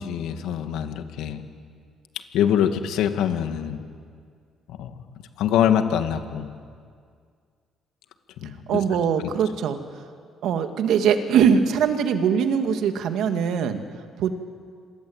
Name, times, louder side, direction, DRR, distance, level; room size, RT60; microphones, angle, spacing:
voice 1, 0.0-1.4 2.3-3.8 4.8-4.9 5.4-6.5 8.4-8.8 9.2-9.3, left 9 dB, 80° left, 8 dB, 2.1 m, -24 dB
voice 2, 8.7-9.8 10.4-13.8 14.2-14.3, right 7 dB, 75° right, 7 dB, 2.4 m, -21 dB
27.5 x 23.5 x 9.0 m, 2.1 s
cardioid pair, 100°, 0 cm